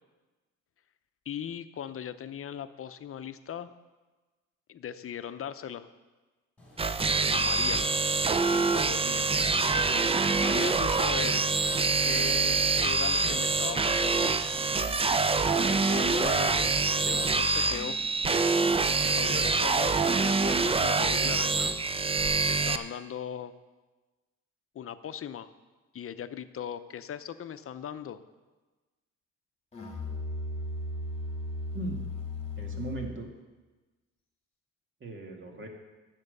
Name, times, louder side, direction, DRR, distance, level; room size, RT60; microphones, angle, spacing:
voice 1, 1.3-3.7 4.7-5.9 7.3-7.8 8.5-9.3 10.4-11.4 12.0-14.4 15.7-18.0 19.1-21.7 22.5-23.5 24.7-25.5 25.9-28.2, left 9 dB, 45° left, 11 dB, 0.7 m, -38 dB
sound 1, 6.6-22.3, left 2 dB, 5° left, 4.0 m, -50 dB
sound 2, 6.8-22.8, right 4 dB, 20° right, 0.5 m, -25 dB
Musical instrument, 29.7-33.3, left 2 dB, 20° left, 2.3 m, -36 dB
voice 2, 31.7-32.1 32.6-33.3 35.0-35.7, right 2 dB, 40° right, 2 dB, 2.2 m, -38 dB
11.0 x 7.4 x 6.7 m, 1.2 s
cardioid pair, 90°, 30 cm